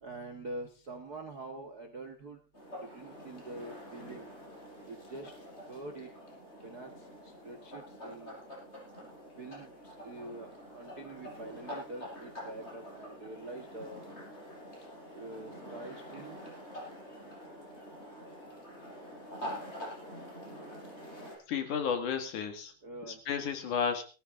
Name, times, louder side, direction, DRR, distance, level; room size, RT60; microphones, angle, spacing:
voice 1, 0.0-2.4 2.9-4.3 4.8-5.3 5.7-6.1 6.6-6.9 7.2-8.3 9.4-10.5 10.7-14.0 15.1-16.4 22.8-23.5, right 2 dB, 50° right, 4 dB, 1.2 m, -45 dB
sound 1, 2.5-21.4, equal, 15° left, 7.2 m, -46 dB
voice 2, 21.5-22.7 23.1-24.0, left 7 dB, 65° left, 6 dB, 3.2 m, -32 dB
18.5 x 14.0 x 3.7 m, 0.34 s
omnidirectional pair, 4.1 m